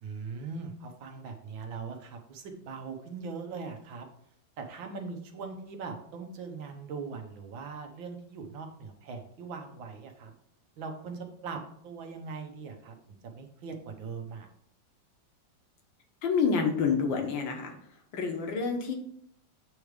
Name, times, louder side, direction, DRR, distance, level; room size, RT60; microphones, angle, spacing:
voice 1, 0.0-4.1 4.6-10.3 10.8-14.5, right 4 dB, 85° right, 4 dB, 1.7 m, -40 dB
voice 2, 16.2-17.7 18.1-19.0, left 5 dB, 75° left, 3 dB, 1.9 m, -28 dB
8.3 x 3.2 x 5.1 m, 0.67 s
omnidirectional pair, 2.1 m